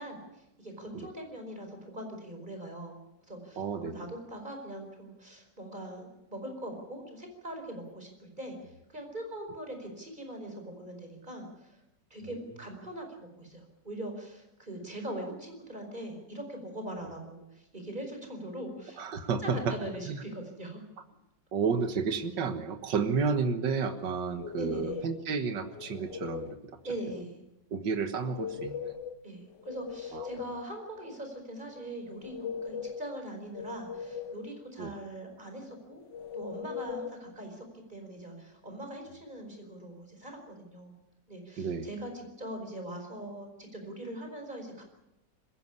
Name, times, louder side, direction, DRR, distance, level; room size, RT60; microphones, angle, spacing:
voice 1, 0.0-3.0 3.3-8.6 8.9-11.8 12.1-19.0 19.4-20.8 24.5-25.0 26.8-27.4 29.2-36.0 36.3-41.0 41.3-44.8, right 1 dB, 25° right, 4 dB, 5.1 m, -41 dB
voice 2, 3.6-4.0 19.0-19.8 20.1-20.2 21.5-26.6 27.7-29.0 30.1-30.3 34.8-34.9 41.6-41.9, right 5 dB, 80° right, 8 dB, 2.1 m, -31 dB
sound 1, 24.4-25.2 25.7-26.6 28.2-29.2 29.5-30.6 32.1-33.1 33.5-34.5 36.1-37.2, left 7 dB, 80° left, 1.7 m, -39 dB
21.0 x 16.5 x 9.7 m, 0.90 s
omnidirectional pair, 1.9 m